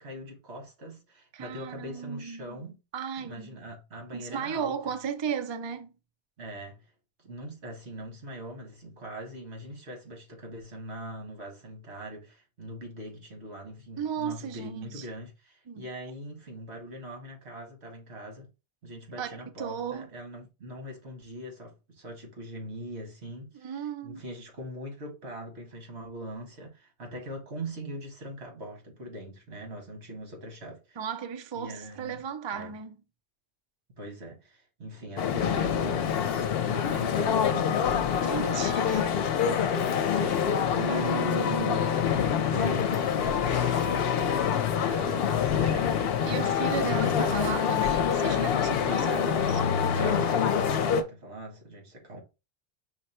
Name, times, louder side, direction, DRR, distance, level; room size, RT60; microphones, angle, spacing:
voice 1, 0.0-2.8 3.2-4.8 6.4-6.9 7.2-18.5 18.8-31.0 31.6-32.2 32.5-32.7 33.9-39.1 40.0-42.0 42.4-44.2 44.8-46.6 46.8-47.3 48.7-52.2, right 1 dB, 85° right, 1.8 m, -41 dB
voice 2, 1.3-2.6 2.9-3.6 4.1-5.9 14.0-15.1 15.7-15.9 19.2-20.1 23.5-24.2 31.0-33.0 38.2-39.0 40.8-41.7 46.3-49.6 49.9-50.5, right 7 dB, 40° right, 0.4 m, -35 dB
sound 1, 35.2-51.0, left 8 dB, 65° left, 0.8 m, -26 dB
5.7 x 2.2 x 4.2 m
omnidirectional pair, 1.1 m